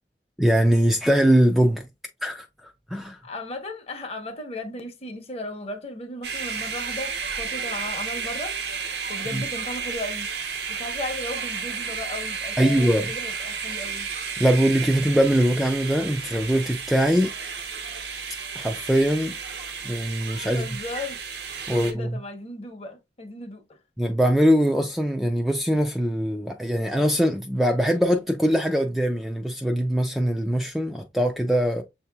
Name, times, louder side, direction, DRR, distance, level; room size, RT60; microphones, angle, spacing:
voice 1, 0.4-1.8 2.2-3.2 9.3-9.4 12.6-13.1 14.4-17.3 18.6-19.4 19.8-20.7 21.7-22.1 24.0-31.8, equal, ahead, 0.4 m, -22 dB
voice 2, 3.2-10.3 10.7-14.1 20.4-21.4 21.7-23.8, left 2 dB, 35° left, 0.9 m, -36 dB
sound 1, 6.2-21.9, right 6 dB, 65° right, 0.7 m, -32 dB
7.1 x 2.7 x 2.3 m
head